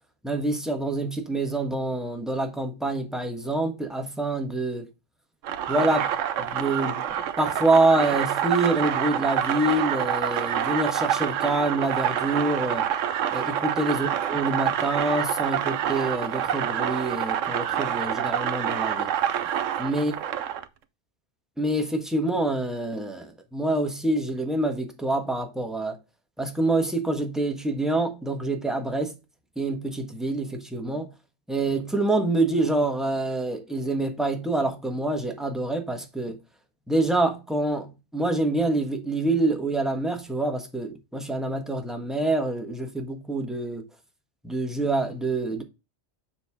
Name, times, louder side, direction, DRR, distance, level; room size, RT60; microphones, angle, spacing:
voice 1, 0.2-4.9 5.7-6.1 6.4-7.0 7.4-12.9 13.3-19.1 19.8-20.1 21.6-26.0 26.4-29.1 29.6-31.1 31.5-36.4 36.9-43.8 44.4-45.6, right 2 dB, ahead, 1.2 m, -26 dB
sound 1, 5.4-20.6, right 9 dB, 85° right, 1.0 m, -27 dB
7.3 x 5.7 x 3.5 m
omnidirectional pair, 1.3 m